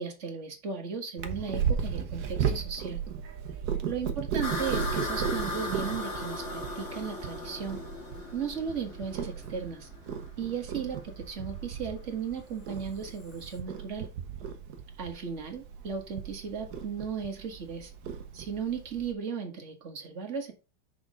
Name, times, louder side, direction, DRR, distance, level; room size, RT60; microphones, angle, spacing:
voice 1, 0.0-3.0 3.8-7.8 8.3-9.9 10.4-14.1 15.0-17.9 18.3-20.5, right 6 dB, 40° right, 4 dB, 1.6 m, -36 dB
Purr, 1.2-19.1, right 7 dB, 60° right, 1.3 m, -36 dB
sound 1, 4.4-13.6, left 2 dB, 40° left, 1.9 m, -38 dB
6.2 x 5.2 x 3.6 m, 0.30 s
omnidirectional pair, 2.1 m